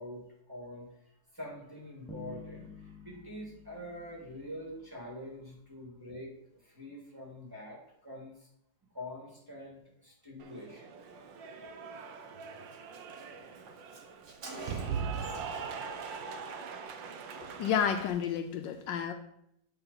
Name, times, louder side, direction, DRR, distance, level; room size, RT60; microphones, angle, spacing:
voice 1, 0.0-8.5 8.9-10.9, left 1 dB, 10° right, -3 dB, 1.5 m, -45 dB
Bass guitar, 2.1-5.2, left 4 dB, 5° left, 0.3 m, -50 dB
Cheering / Applause, 10.4-18.1, right 6 dB, 75° right, 1.4 m, -41 dB
Car, 12.0-12.1 12.4-12.5 12.7-15.7 15.9-16.2, right 3 dB, 55° right, 1.8 m, -48 dB
voice 2, 17.4-19.1, left 8 dB, 75° left, 7 dB, 1.2 m, -31 dB
8.6 x 4.4 x 3.9 m, 0.76 s
omnidirectional pair, 2.1 m